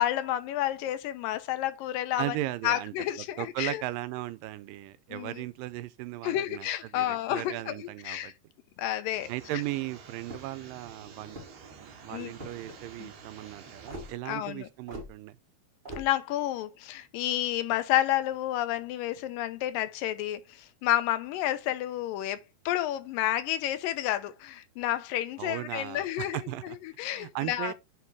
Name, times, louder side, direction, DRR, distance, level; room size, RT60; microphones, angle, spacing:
voice 1, 0.0-2.4 2.6-3.8 5.1-5.4 6.2-8.3 8.8-9.3 12.1-12.3 13.0-13.1 14.3-14.7 16.0-22.4 22.7-27.7, left 13 dB, 85° left, 2.4 m, -30 dB
voice 2, 2.2-8.3 9.3-11.4 11.8-15.4 25.4-26.8 27.0-27.7, right 16 dB, 85° right, 2.3 m, -37 dB
sound 1, 9.1-14.1, right 5 dB, 65° right, 2.5 m, -50 dB
sound 2, 10.2-10.6 11.2-11.7 12.3-12.8 13.9-14.1 14.9-15.1 15.8-16.1, equal, 25° right, 1.2 m, -42 dB
9.4 x 3.4 x 4.6 m
omnidirectional pair, 4.0 m